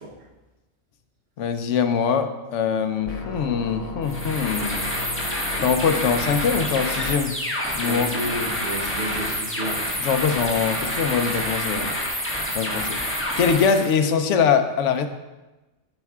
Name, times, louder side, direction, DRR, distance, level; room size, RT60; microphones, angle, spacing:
voice 1, 1.4-4.8 5.6-7.4 7.7-8.1 10.0-11.9 12.5-13.0 13.4-15.1, left 6 dB, 75° left, 8 dB, 0.9 m, -22 dB
sound 1, 3.1-7.1, left 3 dB, 40° left, 0.6 m, -35 dB
sound 2, 4.0-13.9, equal, 10° left, 1.3 m, -28 dB
voice 2, 7.9-9.9, equal, 60° right, 0 dB, 1.3 m, -31 dB
12.0 x 5.5 x 2.3 m, 1.1 s
omnidirectional pair, 1.3 m